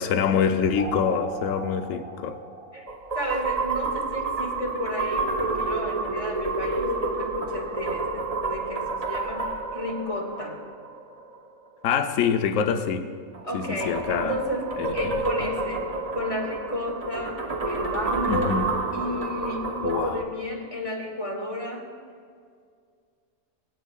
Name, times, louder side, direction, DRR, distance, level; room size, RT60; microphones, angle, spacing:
voice 1, 0.0-2.4 11.8-13.1 13.5-14.4 14.8-15.5 18.3-18.7 19.8-20.2, left 7 dB, 70° left, 8 dB, 1.0 m, -25 dB
sound 1, 0.8-11.4 13.3-20.2, right 3 dB, 30° right, 0.8 m, -30 dB
voice 2, 3.2-10.6 13.4-18.6 18.9-21.9, equal, 20° left, 0 dB, 1.9 m, -32 dB
24.5 x 9.1 x 2.3 m, 2.2 s
omnidirectional pair, 1.5 m